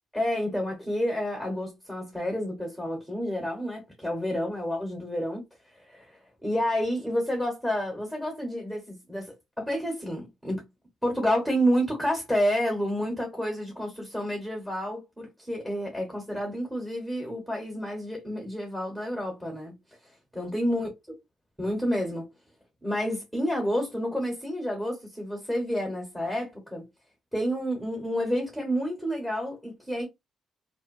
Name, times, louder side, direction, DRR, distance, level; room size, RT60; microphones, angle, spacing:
voice 1, 0.1-5.4 5.9-10.6 11.0-19.7 20.3-20.9 21.6-22.3 22.8-26.9 27.3-30.0, equal, 5° right, 1.2 m, -29 dB
2.6 x 2.4 x 2.6 m
cardioid pair, 90°, 0 cm